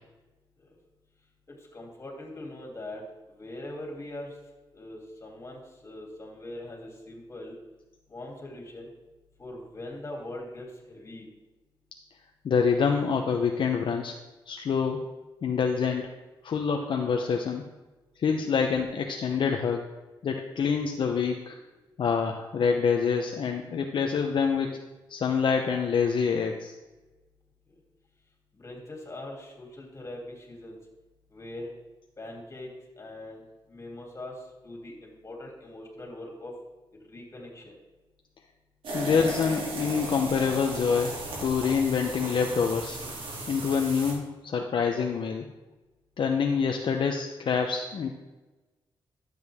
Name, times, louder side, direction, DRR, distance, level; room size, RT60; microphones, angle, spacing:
voice 1, 1.5-4.3 4.7-7.6 8.1-8.9 9.4-11.3 28.6-30.8 31.3-31.7 32.2-32.7 33.0-33.4 33.7-34.3 34.6-36.5 37.1-37.7, left 1 dB, 30° left, -1 dB, 2.9 m, -41 dB
voice 2, 12.4-14.2 14.5-15.0 15.4-16.1 16.4-17.6 18.2-19.9 20.2-21.6 22.0-24.8 25.1-26.7 38.9-43.0 43.5-45.5 46.2-48.1, left 6 dB, 65° left, 3 dB, 0.8 m, -26 dB
sound 1, 38.8-44.1, right 2 dB, 85° right, 2.8 m, -36 dB
12.0 x 7.8 x 3.6 m, 1.1 s
wide cardioid pair, 110°, 9 cm